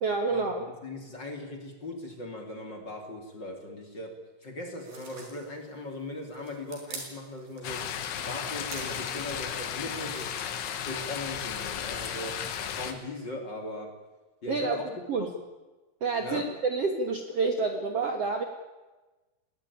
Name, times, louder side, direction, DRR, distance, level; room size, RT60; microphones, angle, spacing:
voice 1, 0.0-0.7 14.5-14.8 15.1-15.3 16.0-18.4, right 4 dB, 85° right, 5 dB, 1.3 m, -28 dB
voice 2, 0.8-4.1 4.4-10.4 10.8-12.4 12.7-13.9 14.4-14.9 15.2-15.3 16.2-16.5, left 1 dB, 30° left, 3 dB, 2.7 m, -39 dB
sound 1, 4.8-9.8, right 4 dB, 55° right, 6.3 m, -47 dB
sound 2, 7.6-12.9, left 8 dB, 85° left, 4.2 m, -34 dB
19.5 x 19.0 x 9.9 m, 1.2 s
omnidirectional pair, 5.4 m